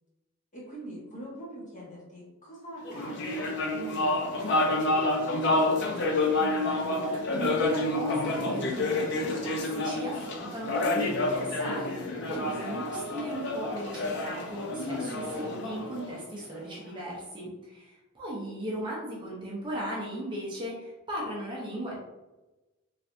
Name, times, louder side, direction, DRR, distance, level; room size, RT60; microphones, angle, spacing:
voice 1, 0.5-6.1 15.3-15.6, equal, 35° left, -7 dB, 1.2 m, -43 dB
sound 1, 2.8-16.5, left 2 dB, 55° left, 0.5 m, -29 dB
voice 2, 6.4-22.0, right 1 dB, 20° right, -5 dB, 0.6 m, -37 dB
3.2 x 2.6 x 2.5 m, 1.1 s
head